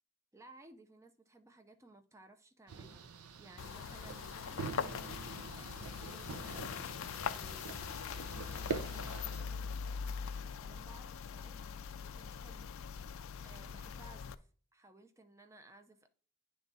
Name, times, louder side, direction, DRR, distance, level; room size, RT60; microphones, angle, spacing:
voice 1, 0.3-5.0 5.6-6.8 7.2-9.8 10.4-12.7 13.4-16.1, right 2 dB, 15° right, 0.5 m, -59 dB
sound 1, 2.7-9.4, right 4 dB, 85° right, 0.6 m, -45 dB
sound 2, 3.6-14.4, left 6 dB, 65° left, 0.4 m, -42 dB
9.6 x 3.5 x 4.0 m
head